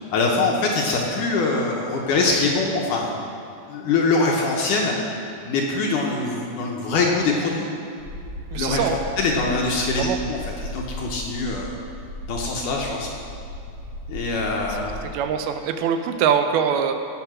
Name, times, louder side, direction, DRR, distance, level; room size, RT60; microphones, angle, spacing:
voice 1, 0.0-3.1 3.7-5.0 5.5-7.7 8.5-11.8 12.3-13.1 14.1-15.0, left 3 dB, 70° left, -1 dB, 2.1 m, -23 dB
sound 1, 8.0-15.0, left 1 dB, 40° right, 4.8 m, -36 dB
voice 2, 8.5-9.0 9.9-10.2 15.1-16.9, right 8 dB, 80° right, 7 dB, 2.5 m, -23 dB
17.5 x 6.5 x 6.2 m, 2.5 s
omnidirectional pair, 4.5 m